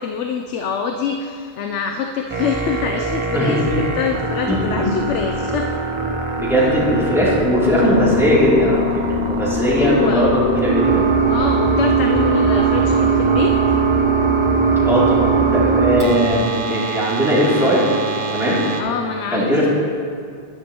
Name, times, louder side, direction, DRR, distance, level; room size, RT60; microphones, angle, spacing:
voice 1, 0.0-5.7 6.6-6.7 9.7-10.3 11.3-13.6 18.8-19.7, left 6 dB, 85° left, 4 dB, 0.9 m, -25 dB
sound 1, 2.3-18.8, right 4 dB, 30° right, 0.9 m, -20 dB
voice 2, 3.3-3.8 6.4-11.0 14.8-17.9 18.3-18.6 19.3-19.7, equal, ahead, -9 dB, 2.8 m, -18 dB
11.5 x 11.0 x 2.9 m, 2.2 s
omnidirectional pair, 1.2 m